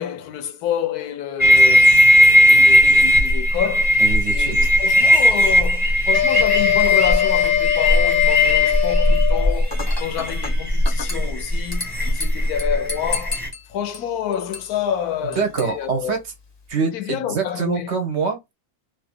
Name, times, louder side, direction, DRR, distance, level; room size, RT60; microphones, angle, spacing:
voice 1, 0.0-2.0 2.5-3.9 4.3-16.2 16.8-17.9, left 9 dB, 90° left, 1.2 m, -28 dB
sound 1, 1.4-13.5, left 1 dB, 10° right, 0.9 m, -17 dB
voice 2, 4.0-4.7 15.4-16.2 16.7-18.5, right 5 dB, 55° right, 0.9 m, -25 dB
sound 2, 6.1-9.6, left 11 dB, 65° left, 0.9 m, -21 dB
Dishes pots and pans / Glass, 9.7-16.7, left 4 dB, 25° left, 0.5 m, -35 dB
3.0 x 2.6 x 3.5 m
omnidirectional pair, 1.6 m